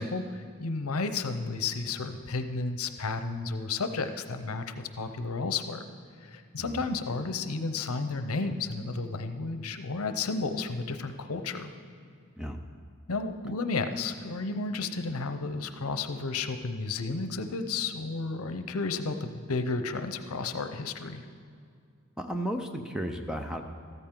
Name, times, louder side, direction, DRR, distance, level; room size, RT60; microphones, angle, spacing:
voice 1, 0.0-4.6 5.0-5.8 6.2-11.7 13.1-21.2, left 3 dB, 85° left, 9 dB, 0.7 m, -32 dB
voice 2, 22.2-23.6, equal, 5° right, 5 dB, 0.5 m, -34 dB
14.0 x 13.5 x 3.8 m, 2.2 s
head